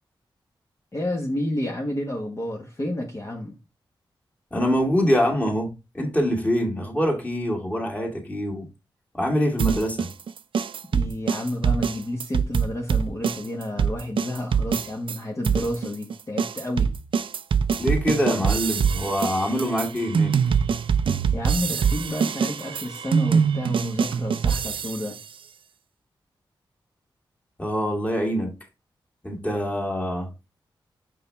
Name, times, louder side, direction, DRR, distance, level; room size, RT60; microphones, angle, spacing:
voice 1, 0.9-3.6 10.9-16.9 21.3-25.2, left 1 dB, 35° left, 1.4 m, -30 dB
voice 2, 4.5-8.7 9.1-10.1 17.8-20.3 27.6-28.6 29.2-30.3, equal, 15° left, 2.4 m, -24 dB
sound 1, 9.6-15.2 15.4-25.2, right 6 dB, 75° right, 0.5 m, -24 dB
5.6 x 5.3 x 3.5 m
cardioid pair, 75°, 9 cm